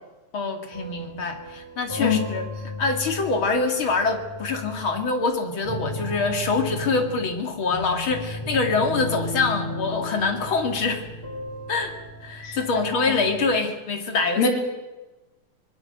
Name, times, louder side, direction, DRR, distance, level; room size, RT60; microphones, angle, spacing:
voice 1, 0.3-2.5 2.8-11.0 11.7-14.5, left 4 dB, 40° left, 4 dB, 2.8 m, -25 dB
sound 1, 0.7-5.0 5.6-13.6, left 1 dB, 5° left, 4.2 m, -35 dB
voice 2, 12.4-12.8 14.4-14.5, left 6 dB, 80° left, 1 dB, 5.1 m, -23 dB
25.0 x 21.0 x 6.7 m, 1.1 s
omnidirectional pair, 4.0 m